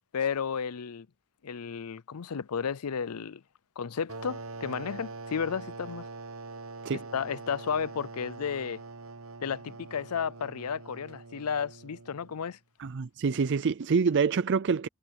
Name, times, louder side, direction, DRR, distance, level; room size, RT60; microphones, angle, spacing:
voice 1, 0.1-1.1 1.4-3.4 3.8-6.1 6.9-8.8 9.4-12.6, left 6 dB, 90° left, 0.6 m, -33 dB
sound 1, 4.1-12.5, right 3 dB, 70° right, 1.1 m, -43 dB
voice 2, 12.8-14.9, right 5 dB, 55° right, 0.4 m, -26 dB
head